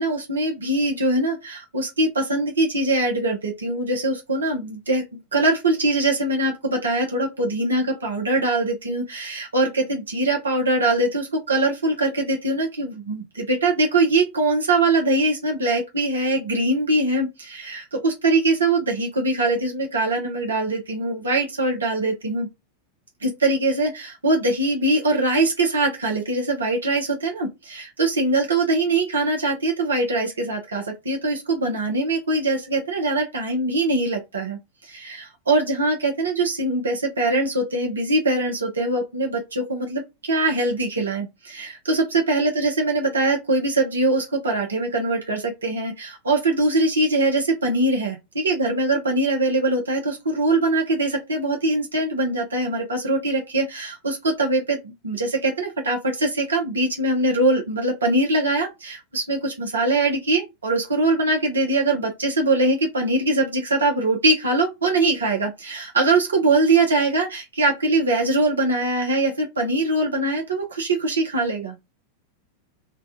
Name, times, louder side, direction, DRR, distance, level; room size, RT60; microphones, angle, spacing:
voice 1, 0.0-5.0 5.3-22.5 23.2-71.8, right 2 dB, 70° right, 0.7 m, -22 dB
2.3 x 2.2 x 2.7 m
figure-of-eight pair, 90°, 0 cm